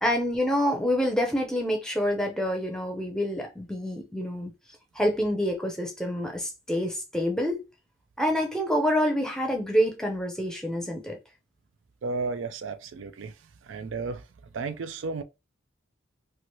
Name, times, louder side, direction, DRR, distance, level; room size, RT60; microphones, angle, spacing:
voice 1, 0.0-4.5 5.0-7.6 8.2-11.2, equal, 5° left, 0.6 m, -27 dB
voice 2, 12.0-13.3 13.6-14.2 14.5-15.2, right 4 dB, 70° right, 0.4 m, -33 dB
3.0 x 2.5 x 3.0 m
head